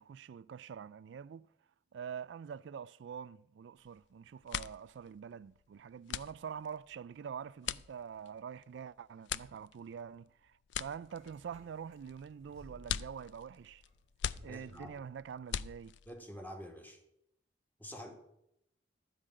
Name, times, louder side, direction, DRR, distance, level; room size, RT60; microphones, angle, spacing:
voice 1, 0.0-1.5 1.9-13.8 14.4-15.9, right 7 dB, 90° right, 0.3 m, -45 dB
sound 1, 3.8-4.1 4.3-16.3, left 9 dB, 90° left, 0.4 m, -42 dB
sound 2, 11.0-14.4 14.8-15.1, right 1 dB, 30° left, 3.2 m, -61 dB
voice 2, 14.4-14.9 16.1-17.0 17.8-18.1, equal, 10° left, 1.6 m, -47 dB
12.0 x 5.1 x 8.6 m
head